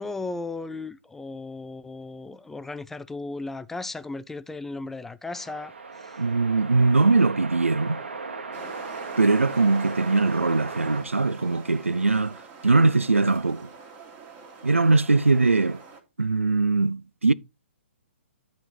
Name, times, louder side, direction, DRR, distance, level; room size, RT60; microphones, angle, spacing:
voice 1, 0.0-6.2, left 3 dB, 5° left, 0.4 m, -36 dB
sound 1, 5.3-11.0, right 4 dB, 65° right, 1.6 m, -37 dB
voice 2, 6.2-8.0 9.2-13.7 14.6-15.8 16.2-17.3, right 3 dB, 85° right, 0.4 m, -21 dB
sound 2, 8.5-16.0, right 5 dB, 25° right, 1.8 m, -45 dB
10.5 x 4.2 x 4.6 m
figure-of-eight pair, 125°, 7 cm